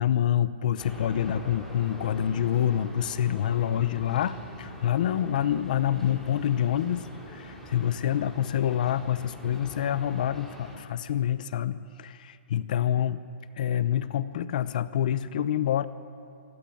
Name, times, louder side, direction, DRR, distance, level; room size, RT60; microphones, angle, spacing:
voice 1, 0.0-13.2 13.6-15.9, left 10 dB, 40° left, 15 dB, 0.8 m, -27 dB
sound 1, 0.8-10.8, equal, 5° left, 3.1 m, -44 dB
25.5 x 15.0 x 8.6 m, 2.6 s
hypercardioid pair, 170°, 7 cm